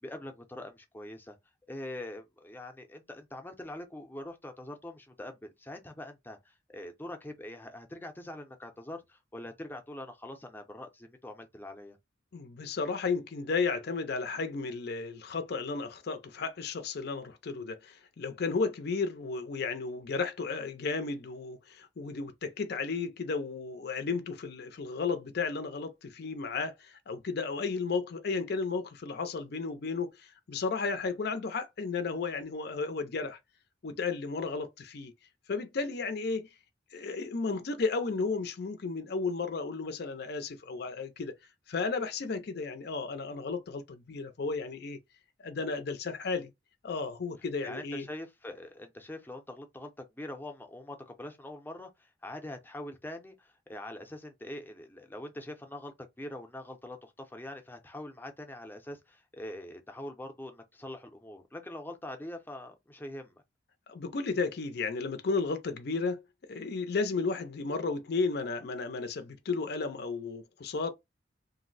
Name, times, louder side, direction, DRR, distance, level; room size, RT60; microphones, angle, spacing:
voice 1, 0.0-1.4 1.7-12.0 47.6-63.4, left 1 dB, 10° left, 0.6 m, -43 dB
voice 2, 12.3-33.4 33.8-35.1 35.5-36.5 36.9-41.3 41.7-45.0 45.4-46.5 46.8-48.0 63.9-66.2 66.5-70.9, left 4 dB, 60° left, 0.5 m, -33 dB
2.6 x 2.0 x 3.9 m
head